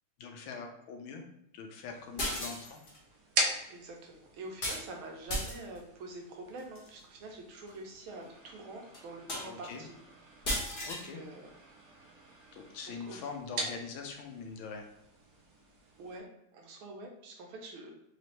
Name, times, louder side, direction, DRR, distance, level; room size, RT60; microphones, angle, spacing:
voice 1, 0.2-1.2 1.5-2.8 9.4-9.8 10.8-11.2 12.5-14.9, left 5 dB, 80° left, 3 dB, 1.5 m, -43 dB
sound 1, 1.8-16.2, right 2 dB, 65° right, 1.0 m, -42 dB
sound 2, 2.2-3.0 4.6-4.9 5.3-5.8 6.6-6.9 7.7-7.8 8.2-8.3 8.9-9.0 9.3-9.7 10.4-11.0, left 1 dB, 40° left, 0.8 m, -35 dB
voice 2, 3.7-9.9 10.8-11.5 12.9-13.2 16.0-16.3 16.5-17.9, right 2 dB, 85° right, 1 dB, 1.6 m, -46 dB
4.1 x 3.1 x 2.8 m, 0.81 s
omnidirectional pair, 2.3 m